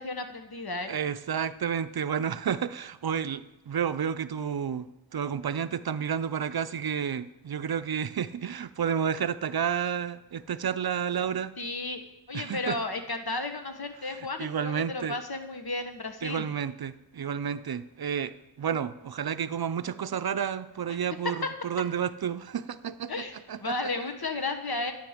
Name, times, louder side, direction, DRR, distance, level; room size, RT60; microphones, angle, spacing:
voice 1, 0.0-0.9 11.6-12.0 12.3-16.5 20.9-21.0 23.1-23.3 23.6-24.9, left 2 dB, 65° left, 1.1 m, -33 dB
voice 2, 0.9-11.5 12.3-12.8 14.2-15.2 16.2-23.1 23.5-23.7, right 8 dB, 65° right, 0.5 m, -31 dB
11.0 x 9.0 x 5.0 m
wide cardioid pair, 50°, 40 cm